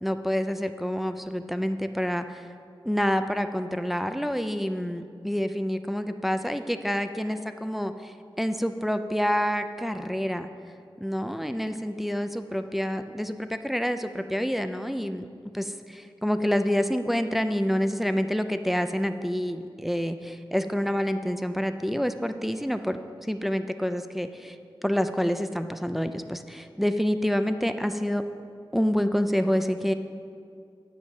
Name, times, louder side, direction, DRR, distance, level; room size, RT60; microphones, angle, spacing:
voice 1, 0.0-2.5 2.8-10.5 11.0-15.3 15.5-24.6 24.8-28.2 28.7-29.9, equal, ahead, 8 dB, 0.5 m, -27 dB
9.2 x 5.0 x 7.2 m, 2.3 s
wide cardioid pair, 50°, 9 cm